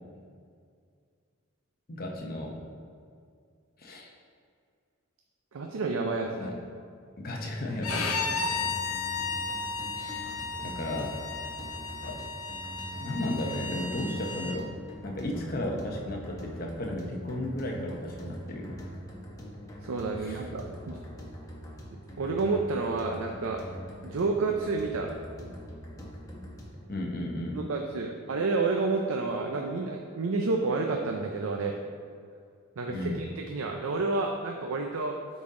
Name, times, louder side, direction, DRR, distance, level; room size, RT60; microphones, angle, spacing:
voice 1, 1.9-2.6 3.8-4.1 6.4-6.6 7.2-8.8 9.9-10.3 10.6-11.1 12.0-12.2 13.0-14.7 15.0-18.8 20.2-20.4 26.9-27.6 32.9-33.2, left 1 dB, 40° left, 0 dB, 0.8 m, -34 dB
voice 2, 5.5-6.5 19.8-21.0 21.9-23.6 24.0-25.2 27.5-31.7 32.8-35.2, right 3 dB, 70° right, 2 dB, 0.5 m, -30 dB
sound 1, 7.7-26.9, equal, 15° left, 0.9 m, -43 dB
Bowed string instrument, 7.8-14.6, left 4 dB, 85° left, 0.8 m, -34 dB
9.5 x 4.1 x 3.7 m, 2.2 s
head